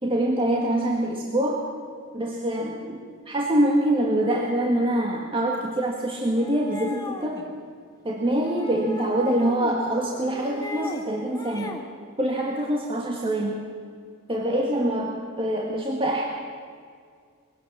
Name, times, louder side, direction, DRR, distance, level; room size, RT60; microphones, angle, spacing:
voice 1, 0.0-1.7 2.1-7.4 8.1-11.8 12.2-13.7 14.3-16.2, right 1 dB, 25° right, -1 dB, 1.8 m, -25 dB
sound 1, 6.4-7.4 8.4-9.8 10.1-11.0 11.3-11.9, left 2 dB, 15° left, 1.6 m, -37 dB
22.5 x 16.5 x 7.3 m, 2.1 s
head